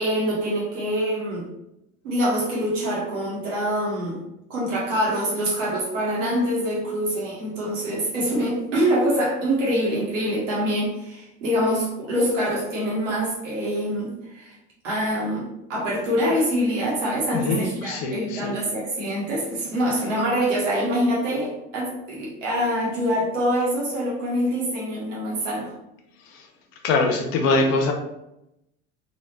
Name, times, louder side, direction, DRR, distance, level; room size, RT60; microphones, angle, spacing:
voice 1, 0.0-1.4 2.0-4.2 4.5-14.6 14.8-25.7, equal, 85° right, -5 dB, 1.4 m, -25 dB
voice 2, 17.3-18.5 26.8-27.9, left 3 dB, 70° left, 4 dB, 0.8 m, -23 dB
3.1 x 2.7 x 3.0 m, 0.86 s
hypercardioid pair, 65°, 36 cm